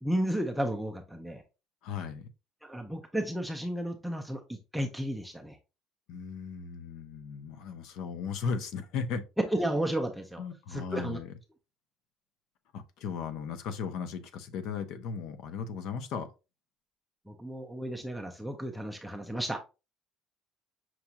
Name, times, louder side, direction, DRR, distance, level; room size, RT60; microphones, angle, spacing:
voice 1, 0.0-1.4 2.6-5.6 9.5-10.4 10.7-11.2 17.3-19.6, right 1 dB, ahead, 0.4 m, -33 dB
voice 2, 1.8-2.3 6.1-9.2 10.4-11.3 12.7-16.3, left 6 dB, 60° left, 0.6 m, -36 dB
5.9 x 2.3 x 2.8 m
cardioid pair, 175°, 0 cm